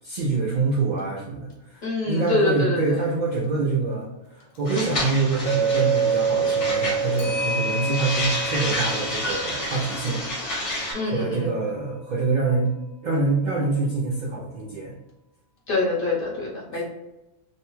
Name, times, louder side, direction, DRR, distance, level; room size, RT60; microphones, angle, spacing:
voice 1, 0.0-10.2 11.1-12.7 13.0-14.9, right 3 dB, 60° right, -4 dB, 0.5 m, -25 dB
Clock, 1.0-1.1 1.5-1.6 4.4-4.6 7.2-11.4, left 4 dB, 90° left, 1.0 m, -34 dB
voice 2, 1.8-3.0 10.9-11.5 15.7-16.8, left 2 dB, 50° left, -4 dB, 0.9 m, -25 dB
sound 1, 4.7-10.9, left 1 dB, 70° left, 1.3 m, -30 dB
Chink clink, 5.4-9.6, right 6 dB, 25° right, 0.8 m, -26 dB
2.6 x 2.2 x 3.0 m, 0.97 s
omnidirectional pair, 1.3 m